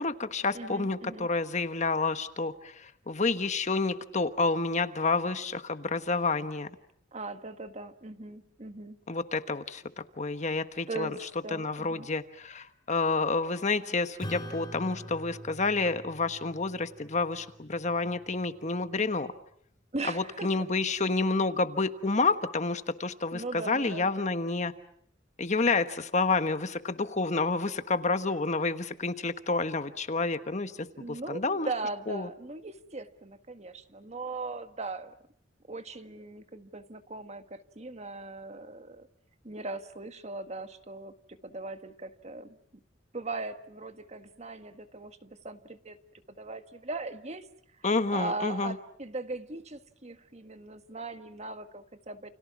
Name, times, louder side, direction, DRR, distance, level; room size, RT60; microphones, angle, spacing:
voice 1, 0.0-6.7 9.1-9.8 10.2-11.2 11.5-19.3 20.1-24.7 25.4-31.7 32.1-32.3 47.8-48.7, left 3 dB, 40° left, 10 dB, 1.3 m, -29 dB
voice 2, 0.5-1.3 7.1-9.0 10.9-11.2 11.4-12.1 19.9-20.5 23.3-24.1 30.8-35.1 35.7-39.1 39.4-42.6 43.1-46.0 46.4-47.5 48.1-52.3, right 3 dB, 35° right, 9 dB, 1.6 m, -39 dB
Acoustic guitar / Strum, 14.2-19.0, equal, 25° left, 3.7 m, -45 dB
29.5 x 29.5 x 6.1 m, 0.65 s
head